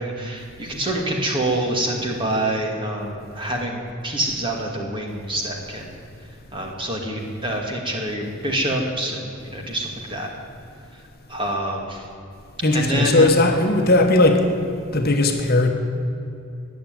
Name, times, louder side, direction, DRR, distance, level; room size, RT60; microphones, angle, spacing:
voice 1, 0.0-5.9 6.5-10.3 11.3-12.0 12.7-13.3, right 1 dB, 20° right, 0 dB, 2.2 m, -26 dB
voice 2, 12.6-14.5 14.9-15.7, left 2 dB, 45° left, 3 dB, 1.3 m, -17 dB
21.0 x 7.5 x 9.0 m, 2.7 s
head